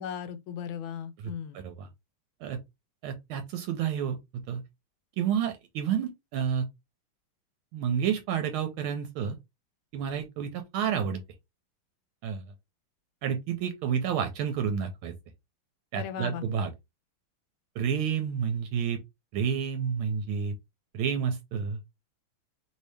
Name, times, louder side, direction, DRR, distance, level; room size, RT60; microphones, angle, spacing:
voice 1, 0.0-1.6 15.9-16.4, left 8 dB, 75° left, 1.3 m, -37 dB
voice 2, 3.0-4.6 5.2-6.7 7.7-9.4 9.9-11.2 12.2-12.4 13.2-15.1 15.9-16.7 17.8-19.0 19.3-20.5 20.9-21.8, right 7 dB, 80° right, 1.4 m, -30 dB
3.2 x 2.7 x 3.2 m
omnidirectional pair, 2.4 m